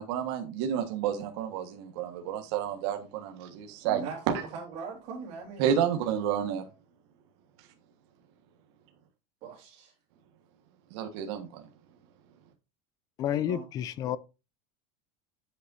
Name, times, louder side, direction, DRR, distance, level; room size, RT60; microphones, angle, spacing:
voice 1, 0.0-4.0 5.6-6.6 10.9-11.6, right 9 dB, 55° right, 1.4 m, -30 dB
voice 2, 3.8-5.8 9.4-9.9 13.3-13.7, right 5 dB, 35° right, 2.8 m, -40 dB
voice 3, 13.2-14.2, left 10 dB, 20° left, 0.4 m, -30 dB
8.1 x 8.0 x 2.6 m
supercardioid pair, 180°, 17 cm